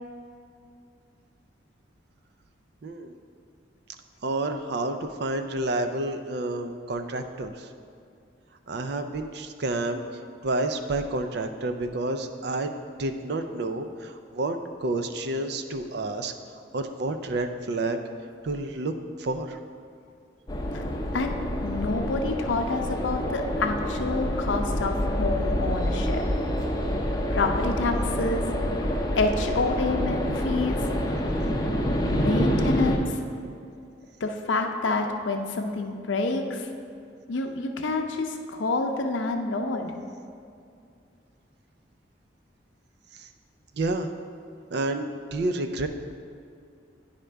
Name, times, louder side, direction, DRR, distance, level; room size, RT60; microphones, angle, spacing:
voice 1, 2.8-3.2 4.2-7.7 8.7-10.0 10.4-12.7 13.0-16.3 16.7-18.0 18.4-18.9 19.2-19.6 43.1-43.3 43.8-44.1 44.7-45.9, right 2 dB, 60° right, 8 dB, 0.4 m, -29 dB
sound 1, 20.5-33.0, equal, 20° left, 0.5 m, -27 dB
voice 2, 21.1-26.2 27.3-28.5 29.1-30.9 32.1-33.2 34.2-36.7 37.3-40.0, left 3 dB, 85° left, 4 dB, 0.6 m, -28 dB
9.7 x 5.1 x 3.4 m, 2.4 s
head